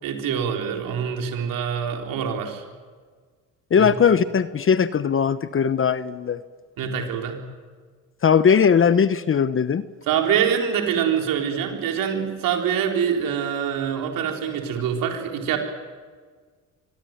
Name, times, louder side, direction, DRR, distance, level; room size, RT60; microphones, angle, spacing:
voice 1, 0.0-2.6 3.8-3.9 6.8-7.4 10.1-15.6, right 8 dB, 80° right, 3 dB, 4.3 m, -25 dB
voice 2, 3.7-6.4 8.2-9.8, left 7 dB, 40° left, 14 dB, 1.0 m, -19 dB
24.5 x 21.5 x 9.3 m, 1.5 s
cardioid pair, 80°, 33 cm